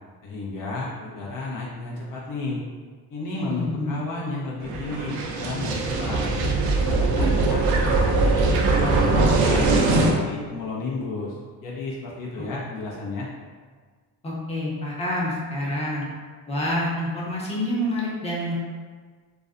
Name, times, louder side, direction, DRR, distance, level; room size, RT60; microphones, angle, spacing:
voice 1, 0.2-2.6 3.1-6.3 6.8-9.7 10.0-13.3, left 3 dB, 60° left, -5 dB, 0.6 m, -32 dB
voice 2, 3.5-3.9 12.4-12.5 14.2-16.0 16.5-18.6, left 1 dB, 15° left, -6 dB, 0.7 m, -27 dB
sound 1, 4.6-10.1, right 3 dB, 80° right, 0.5 m, -21 dB
2.4 x 2.1 x 2.4 m, 1.5 s
supercardioid pair, 75°, 37 cm